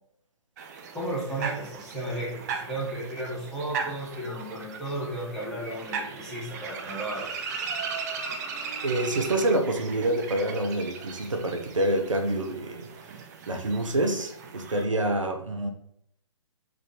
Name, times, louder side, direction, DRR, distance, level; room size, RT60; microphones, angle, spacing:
sound 1, 0.6-14.8, right 5 dB, 35° right, 0.6 m, -38 dB
voice 1, 0.9-7.3, right 1 dB, 5° left, -7 dB, 1.5 m, -34 dB
voice 2, 8.8-15.7, right 1 dB, 80° right, 4 dB, 0.7 m, -27 dB
3.7 x 3.3 x 4.0 m, 0.74 s
figure-of-eight pair, 125°, 16 cm